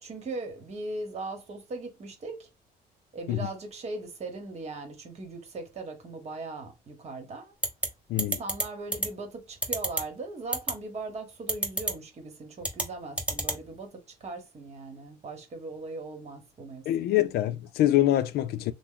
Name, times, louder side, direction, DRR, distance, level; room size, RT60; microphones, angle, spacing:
voice 1, 0.0-2.5 3.1-7.5 8.1-17.3, right 2 dB, 40° right, 1.1 m, -39 dB
sound 1, 7.6-7.9 8.2-8.6 8.9-9.1 9.6-10.0 10.5-10.7 11.5-11.9 12.6-12.8 13.2-13.6, right 2 dB, 5° right, 0.9 m, -27 dB
voice 2, 8.1-8.4 16.9-18.7, left 13 dB, 70° left, 0.4 m, -25 dB
2.9 x 2.0 x 3.7 m
cardioid pair, 110°, 17 cm